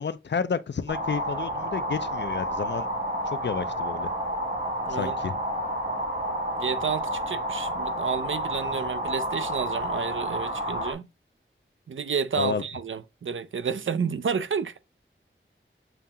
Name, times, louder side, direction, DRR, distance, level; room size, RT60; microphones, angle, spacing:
voice 1, 0.0-2.9 3.3-4.1 4.9-5.4 12.4-12.6, left 6 dB, 60° left, 0.4 m, -31 dB
sound 1, 0.9-10.9, equal, 45° right, 1.3 m, -30 dB
voice 2, 6.6-11.1 11.9-14.7, right 6 dB, 70° right, 0.4 m, -30 dB
7.0 x 2.8 x 2.3 m
wide cardioid pair, 65°, 21 cm